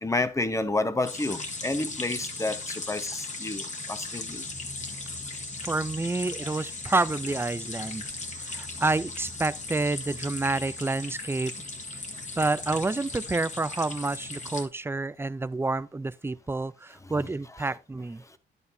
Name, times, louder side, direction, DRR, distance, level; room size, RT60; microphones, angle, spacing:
voice 1, 0.0-4.4 17.0-17.1, left 2 dB, 15° left, 1.1 m, -30 dB
sound 1, 1.0-14.6, left 3 dB, 35° left, 2.0 m, -37 dB
voice 2, 5.6-8.1 8.4-11.5 12.4-18.2, right 3 dB, 10° right, 0.5 m, -29 dB
10.5 x 8.0 x 2.7 m
cardioid pair, 90°, 20 cm